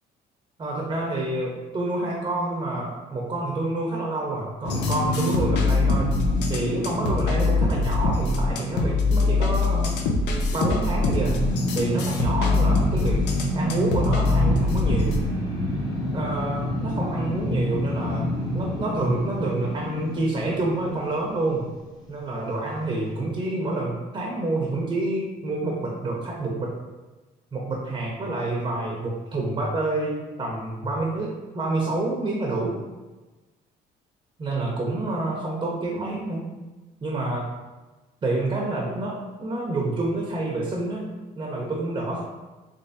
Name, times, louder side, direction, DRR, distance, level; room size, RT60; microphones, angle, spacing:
voice 1, 0.6-6.1 6.5-10.0 10.5-11.4 11.7-13.2 13.5-15.2 16.1-21.7 22.1-26.7 27.5-32.8 34.4-36.5 37.0-37.5 38.2-41.1 41.4-42.2, right 2 dB, 25° right, -2 dB, 0.7 m, -28 dB
sound 1, 4.6-21.8, equal, 25° left, 0.9 m, -29 dB
sound 2, 4.7-15.2, left 3 dB, 85° left, 0.5 m, -23 dB
3.3 x 3.2 x 2.7 m, 1.2 s
cardioid pair, 110°, 17 cm